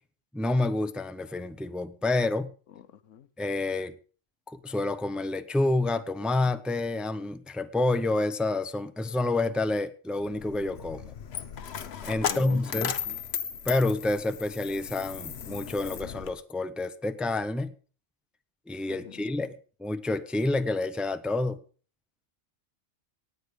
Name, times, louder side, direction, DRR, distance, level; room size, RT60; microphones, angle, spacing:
voice 1, 0.3-2.5 3.4-3.9 4.5-11.1 12.0-12.9 13.7-17.7 18.7-19.5 19.8-21.6, left 2 dB, ahead, 0.6 m, -28 dB
voice 2, 2.7-3.3 12.2-13.2 18.9-19.3, left 9 dB, 85° left, 1.2 m, -44 dB
Coin (dropping), 10.2-16.3, left 7 dB, 60° left, 1.1 m, -36 dB
18.0 x 8.2 x 5.2 m
omnidirectional pair, 1.3 m